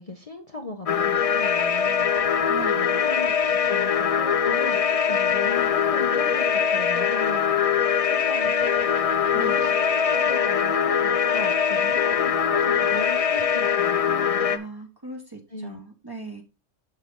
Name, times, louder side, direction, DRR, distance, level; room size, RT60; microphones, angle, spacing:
voice 1, 0.0-3.3 3.6-7.4 8.0-8.7 9.3-9.7 10.1-14.6 15.5-15.8, left 2 dB, 30° left, 3 dB, 0.9 m, -38 dB
sound 1, 0.9-14.6, left 7 dB, 50° left, 0.4 m, -22 dB
voice 2, 2.5-3.0 9.3-9.7 14.1-16.4, right 4 dB, 20° right, 3 dB, 1.3 m, -39 dB
6.8 x 6.7 x 3.7 m, 0.29 s
omnidirectional pair, 1.3 m